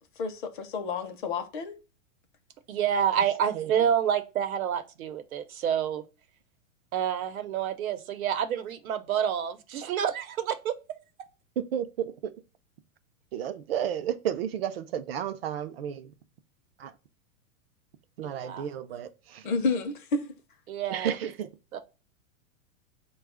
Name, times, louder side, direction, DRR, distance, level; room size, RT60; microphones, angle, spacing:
voice 1, 0.2-1.8 19.4-20.3, left 3 dB, 40° left, 0.6 m, -30 dB
voice 2, 2.7-6.0 6.9-10.7 18.2-18.7 20.7-21.2 21.7-21.8, right 9 dB, 90° right, 0.9 m, -28 dB
voice 3, 3.5-3.9 11.6-12.3 13.3-16.0 16.8-16.9 18.2-19.5 20.9-21.5, right 9 dB, 50° right, 0.5 m, -32 dB
4.6 x 2.3 x 4.7 m
supercardioid pair, 170°, 41 cm